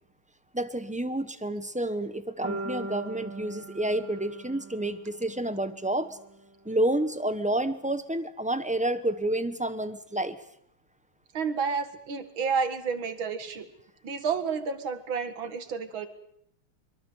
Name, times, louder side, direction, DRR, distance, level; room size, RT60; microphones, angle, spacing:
voice 1, 0.5-6.2 6.6-10.4, right 1 dB, 5° right, 11 dB, 0.5 m, -29 dB
sound 1, 2.4-6.5, right 2 dB, 55° right, 4.5 m, -40 dB
voice 2, 11.3-13.7 14.0-16.1, right 5 dB, 70° right, 10 dB, 2.7 m, -30 dB
24.0 x 23.5 x 8.1 m, 0.72 s
omnidirectional pair, 2.3 m